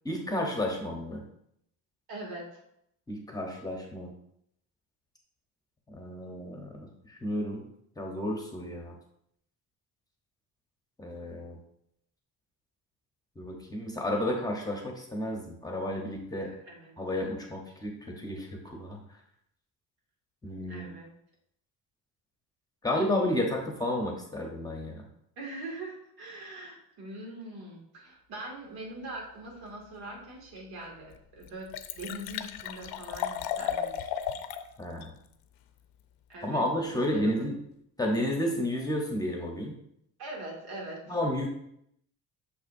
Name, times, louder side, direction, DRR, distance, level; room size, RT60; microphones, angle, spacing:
voice 1, 0.0-1.2 3.1-4.1 5.9-7.6 8.0-8.9 11.0-11.6 13.4-16.5 17.0-19.0 20.4-20.9 22.8-25.0 34.8-35.1 36.4-37.5 38.0-39.7 41.1-41.5, left 1 dB, 10° left, 0 dB, 0.8 m, -32 dB
voice 2, 2.1-2.6 16.4-16.9 20.7-21.1 25.4-31.7 32.0-34.1 36.3-36.7 37.0-37.4 40.2-41.2, right 1 dB, 85° right, -2 dB, 2.2 m, -42 dB
Liquid, 30.6-30.7 31.1-31.2 31.4-34.7 35.0-35.1, left 9 dB, 80° left, 0.6 m, -34 dB
6.5 x 5.7 x 2.6 m, 0.74 s
cardioid pair, 160°, 36 cm